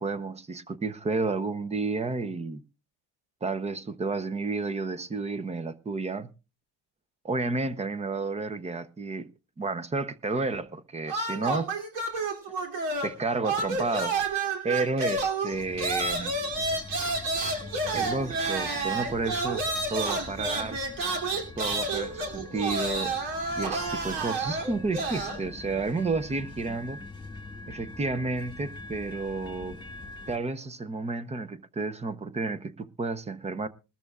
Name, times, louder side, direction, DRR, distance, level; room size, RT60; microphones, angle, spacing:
voice 1, 0.0-2.6 3.4-6.3 7.2-9.3 9.6-11.7 13.0-14.3 14.6-16.4 17.9-19.6 19.9-20.8 21.6-23.1 23.6-27.0 27.7-29.8 30.3-33.7, right 3 dB, 15° right, 0.7 m, -31 dB
sound 1, 11.1-13.2 13.4-25.4, right 3 dB, 75° right, 3.0 m, -30 dB
sound 2, 15.5-30.4, left 3 dB, 10° left, 1.8 m, -44 dB
20.0 x 13.5 x 2.4 m
cardioid pair, 125°, 44 cm